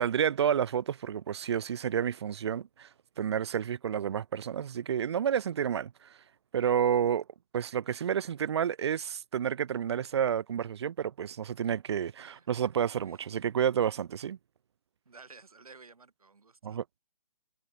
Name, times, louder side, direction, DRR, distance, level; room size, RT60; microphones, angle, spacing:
voice 1, 0.0-2.9 3.2-6.2 6.5-7.2 7.5-14.4 16.6-17.0, right 8 dB, 45° right, 1.0 m, -30 dB
voice 2, 12.2-12.6 13.0-13.3 15.0-16.8, right 4 dB, 70° right, 6.5 m, -54 dB
figure-of-eight pair, 135°, 20 cm